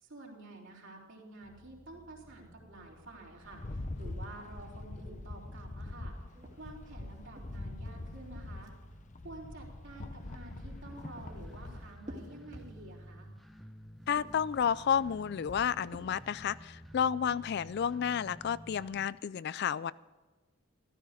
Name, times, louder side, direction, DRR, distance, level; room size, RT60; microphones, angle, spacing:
voice 1, 0.0-6.2 6.6-8.7 9.2-13.3, right 2 dB, 60° right, -2 dB, 3.6 m, -50 dB
sound 1, 1.4-19.1, equal, ahead, 1.2 m, -54 dB
Rattle, 3.5-11.9, left 2 dB, 35° left, 0.7 m, -44 dB
sound 2, 6.3-9.0 10.7-13.1 14.0-16.6, equal, 35° right, 2.1 m, -51 dB
voice 2, 14.1-19.9, left 8 dB, 50° left, 19 dB, 0.3 m, -31 dB
14.5 x 13.0 x 5.0 m, 1.2 s
head